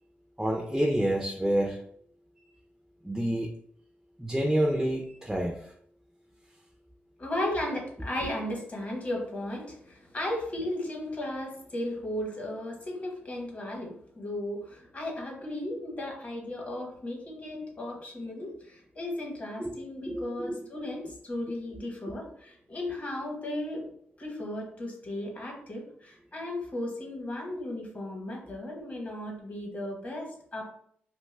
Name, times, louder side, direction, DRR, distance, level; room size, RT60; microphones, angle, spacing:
voice 1, 0.4-1.8 3.0-3.5 4.2-5.6 19.6-19.8 20.1-20.7 21.0-21.1, right 1 dB, 5° right, -1 dB, 0.4 m, -28 dB
voice 2, 7.2-23.8 24.2-30.7, left 1 dB, 35° left, 0 dB, 1.0 m, -35 dB
2.7 x 2.2 x 3.2 m, 0.64 s
cardioid pair, 105°, 4 cm